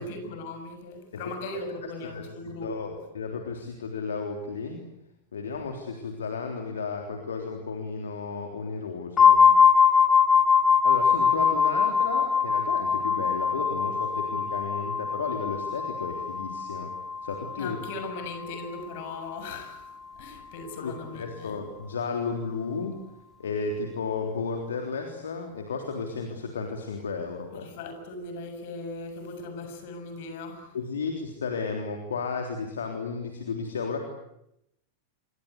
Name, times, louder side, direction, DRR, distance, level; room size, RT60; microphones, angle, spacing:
voice 1, 0.0-3.0 17.6-21.6 27.5-30.7, left 2 dB, 50° left, 8 dB, 7.2 m, -39 dB
voice 2, 1.8-2.2 2.6-4.8 5.3-9.5 10.8-16.9 17.2-17.8 20.8-22.9 23.4-27.7 30.7-34.0, left 5 dB, 65° left, 4 dB, 3.5 m, -33 dB
sound 1, 9.2-18.8, left 6 dB, 20° left, 2.6 m, -22 dB
27.5 x 24.5 x 8.2 m, 0.83 s
figure-of-eight pair, 90°, 0 cm